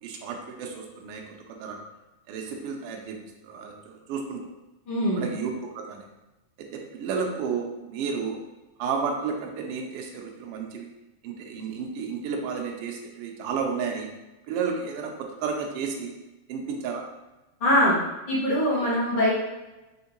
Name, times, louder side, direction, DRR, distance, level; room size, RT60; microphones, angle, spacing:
voice 1, 0.0-1.8 2.3-3.2 3.4-4.4 5.2-6.0 6.6-8.4 8.8-10.9 11.2-14.1 14.5-16.1 16.5-17.0, right 5 dB, 90° right, 1 dB, 1.3 m, -32 dB
voice 2, 4.9-5.2 17.6-18.0 18.3-19.3, equal, 55° left, -8 dB, 0.5 m, -22 dB
4.4 x 3.5 x 2.9 m, 1.0 s
omnidirectional pair, 3.3 m